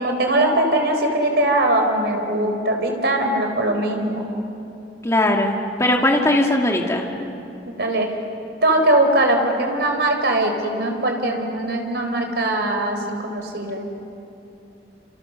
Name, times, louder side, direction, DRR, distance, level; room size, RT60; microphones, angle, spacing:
voice 1, 0.0-4.3 7.8-8.1 8.6-13.9, right 1 dB, 65° right, 3 dB, 4.3 m, -21 dB
voice 2, 5.0-7.1, left 1 dB, 15° left, 1 dB, 2.2 m, -19 dB
28.5 x 28.0 x 6.8 m, 2.7 s
head